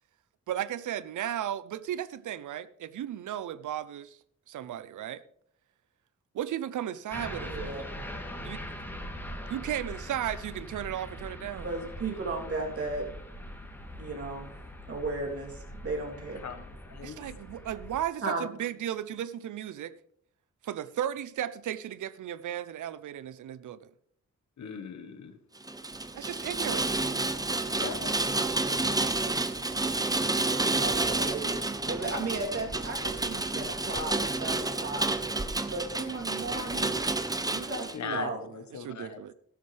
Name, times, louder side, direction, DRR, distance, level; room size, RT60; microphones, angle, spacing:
voice 1, 0.5-4.2 4.5-5.2 6.3-7.7 8.4-8.6 9.5-11.7 17.0-19.9 20.6-23.8 26.1-26.9 38.0-39.3, right 11 dB, 85° right, 0.6 m, -35 dB
sound 1, 7.1-18.0, equal, 5° left, 2.7 m, -42 dB
voice 2, 7.4-7.8 11.6-13.0 14.0-14.5 14.9-16.4 18.2-18.5 30.8-35.1 35.7-37.0 37.4-38.4, right 3 dB, 50° right, 3.1 m, -35 dB
voice 3, 16.4-17.2 24.6-25.4 27.8-28.1 37.9-39.2, left 6 dB, 70° left, 1.3 m, -39 dB
Rain, 25.6-38.0, right 2 dB, 15° right, 0.7 m, -30 dB
13.5 x 12.5 x 3.3 m
wide cardioid pair, 105°, 30 cm